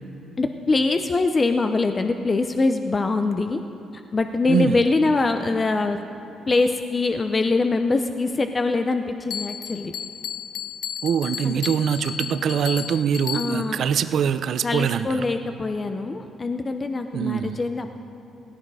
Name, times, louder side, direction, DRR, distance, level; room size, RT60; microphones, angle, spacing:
voice 1, 0.4-3.6 4.1-6.0 6.5-9.9 11.4-11.6 13.3-13.8 14.6-18.0, left 3 dB, 30° left, 7 dB, 0.7 m, -23 dB
voice 2, 4.5-4.8 11.0-15.2 17.1-17.6, right 7 dB, 65° right, 12 dB, 0.6 m, -23 dB
Bell, 9.3-13.8, left 8 dB, 80° left, 0.5 m, -33 dB
17.0 x 15.0 x 4.8 m, 2.9 s
cardioid pair, 90°, 0 cm